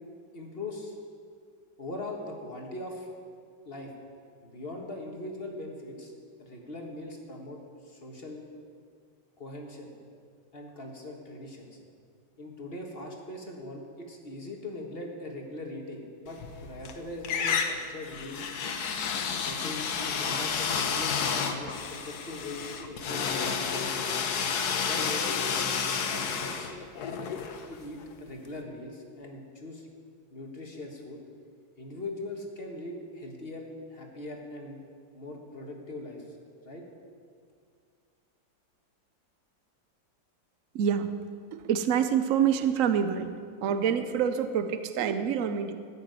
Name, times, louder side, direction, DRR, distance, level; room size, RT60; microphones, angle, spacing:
voice 1, 0.3-0.9 1.8-3.1 3.6-3.9 4.4-6.1 6.4-8.4 9.4-9.9 10.5-11.8 12.4-18.5 19.4-24.1 24.8-25.5 26.0-26.7 27.0-27.3 27.7-29.9 30.3-31.2 31.8-34.8 35.1-36.2 36.6-36.9, left 2 dB, 30° left, 1 dB, 1.6 m, -41 dB
sound 1, 16.3-16.9 17.2-28.1, left 6 dB, 60° left, 1.3 m, -31 dB
voice 2, 40.8-41.1 41.7-43.3 43.6-45.7, right 8 dB, 90° right, 10 dB, 0.7 m, -26 dB
14.0 x 6.8 x 9.0 m, 2.2 s
omnidirectional pair, 2.2 m